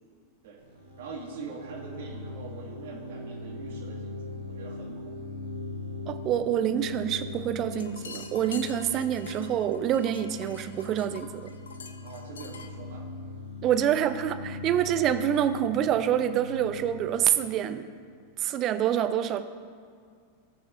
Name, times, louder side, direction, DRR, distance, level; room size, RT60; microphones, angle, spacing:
sound 1, 0.6-18.2, left 2 dB, 75° right, 2.5 m, -41 dB
voice 1, 1.0-5.2 12.0-13.1, right 4 dB, 55° right, 0 dB, 2.1 m, -43 dB
voice 2, 6.1-11.3 13.6-17.9 18.4-19.4, right 10 dB, 35° right, 10 dB, 0.7 m, -26 dB
Cows cattle cowbells in Swiss alps Switzerland, 7.7-12.7, left 5 dB, 70° left, 0.8 m, -46 dB
20.0 x 6.7 x 3.9 m, 2.1 s
figure-of-eight pair, 90°, 0 cm